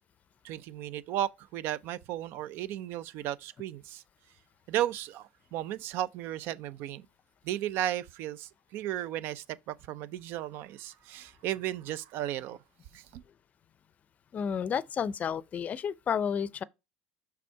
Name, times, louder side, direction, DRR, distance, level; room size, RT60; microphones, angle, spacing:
voice 1, 0.4-4.0 4.7-7.1 7.4-12.6 12.9-13.2, right 12 dB, 60° right, 0.5 m, -35 dB
voice 2, 14.3-16.6, left 7 dB, 35° left, 0.5 m, -31 dB
6.0 x 3.5 x 4.6 m
supercardioid pair, 90°, 4 cm